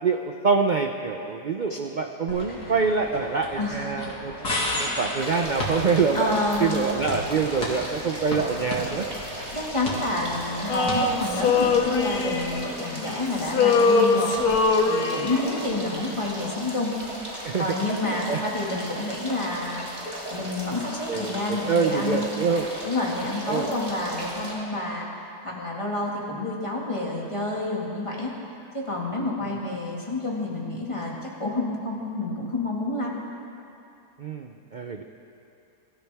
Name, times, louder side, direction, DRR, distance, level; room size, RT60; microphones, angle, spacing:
voice 1, 0.0-6.3 6.6-9.1 17.4-17.7 18.0-18.4 21.1-22.7 23.5-23.7 34.2-35.0, right 5 dB, 80° right, 4 dB, 0.4 m, -25 dB
sound 1, 2.3-12.8, left 1 dB, 90° left, 2.7 m, -34 dB
voice 2, 3.5-4.0 6.1-6.8 9.5-16.9 17.6-20.0 20.3-22.3 22.8-25.1 25.4-28.3 28.7-33.2, left 2 dB, 20° left, -3 dB, 2.0 m, -29 dB
sound 2, 5.2-24.5, right 1 dB, 25° right, 2.6 m, -36 dB
Male singing, 10.7-13.1 13.4-15.6, left 4 dB, 70° left, 1.4 m, -22 dB
23.0 x 13.5 x 3.5 m, 2.7 s
omnidirectional pair, 1.7 m